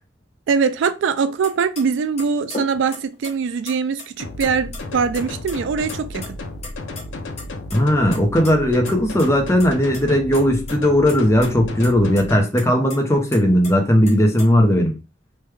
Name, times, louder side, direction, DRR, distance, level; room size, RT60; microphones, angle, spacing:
voice 1, 0.5-6.2, right 5 dB, 75° right, 0.3 m, -22 dB
sound 1, 1.4-1.5 1.8-1.9 2.2-3.3 3.7-4.5 4.7-4.8 5.1-5.6 5.8-6.3 6.6-7.8 8.1-8.5 8.9-9.0 9.2-9.3 9.6-10.0 10.3-10.8 11.1-11.5 11.8-11.9 12.2-12.3 12.6-13.7 14.1-14.5, left 3 dB, 35° left, 1.1 m, -35 dB
sound 2, 4.2-12.4, left 2 dB, 75° left, 0.5 m, -33 dB
voice 2, 7.7-15.0, equal, 15° left, 0.6 m, -17 dB
3.1 x 2.2 x 3.3 m
head